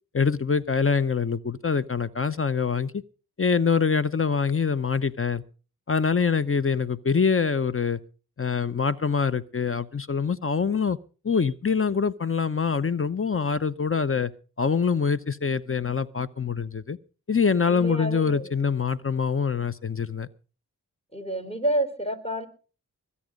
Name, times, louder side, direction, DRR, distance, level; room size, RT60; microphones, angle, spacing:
voice 1, 0.1-3.0 3.4-5.4 5.9-8.0 8.4-11.0 11.2-14.3 14.6-17.0 17.3-20.3, left 5 dB, 35° left, 15 dB, 0.8 m, -24 dB
voice 2, 17.7-18.5 21.1-22.5, right 1 dB, 15° left, 8 dB, 3.7 m, -29 dB
21.0 x 8.6 x 5.2 m, 0.38 s
cardioid pair, 50°, 37 cm